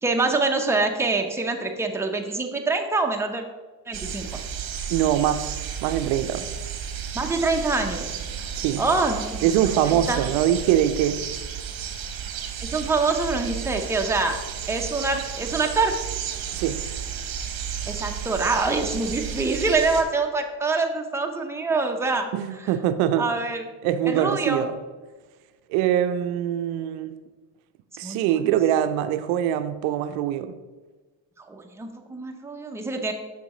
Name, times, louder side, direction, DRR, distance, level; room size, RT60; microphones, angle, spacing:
voice 1, 0.0-3.4 3.9-4.4 7.1-8.1 8.8-9.5 9.8-10.3 12.6-14.4 14.7-16.0 17.9-22.3 22.6-22.7 23.2-23.7 24.1-24.7 28.0-28.5 31.4-33.1, right 3 dB, 5° right, 0.6 m, -25 dB
sound 1, 3.9-20.0, right 8 dB, 45° right, 1.0 m, -33 dB
voice 2, 4.9-6.5 8.5-8.8 9.4-11.2 16.5-16.8 22.3-23.3 23.8-24.7 25.7-27.2 28.0-30.5, right 11 dB, 70° right, 0.5 m, -23 dB
6.1 x 6.0 x 3.0 m
supercardioid pair, 75°, 49 cm